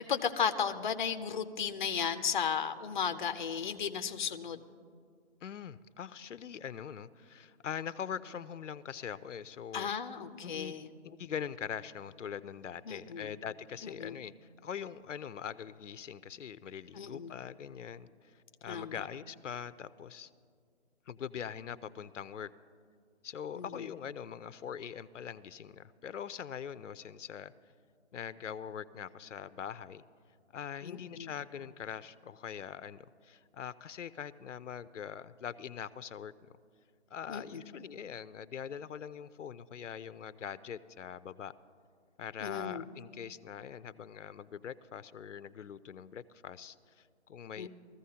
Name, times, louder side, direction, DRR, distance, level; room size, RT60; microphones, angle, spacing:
voice 1, 0.0-4.7 9.7-10.9 12.9-13.3 13.8-14.1 16.9-17.3 18.6-19.0 23.6-23.7 30.8-31.3 37.3-37.6 42.4-42.8 47.6-47.7, left 7 dB, 40° left, 9 dB, 0.5 m, -35 dB
voice 2, 5.4-9.9 10.4-10.8 11.0-20.3 21.1-22.5 23.2-27.5 28.1-30.0 30.5-36.3 37.1-41.5 42.2-47.7, left 8 dB, 85° left, 14 dB, 0.6 m, -43 dB
21.5 x 14.5 x 2.8 m, 2.2 s
hypercardioid pair, 165°, 36 cm